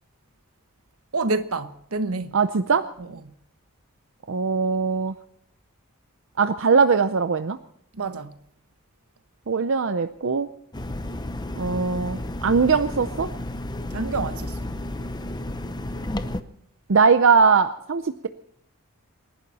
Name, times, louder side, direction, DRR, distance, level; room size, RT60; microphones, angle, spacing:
voice 1, 1.1-2.4 3.0-3.3 7.9-8.4 13.9-14.7, right 3 dB, 80° right, 1.2 m, -28 dB
voice 2, 2.3-2.9 4.3-5.2 6.4-7.6 9.5-10.5 11.6-13.3 16.9-18.3, right 5 dB, 60° right, 0.6 m, -20 dB
sound 1, 10.7-16.4, left 1 dB, 20° left, 0.8 m, -32 dB
28.5 x 11.5 x 4.2 m
head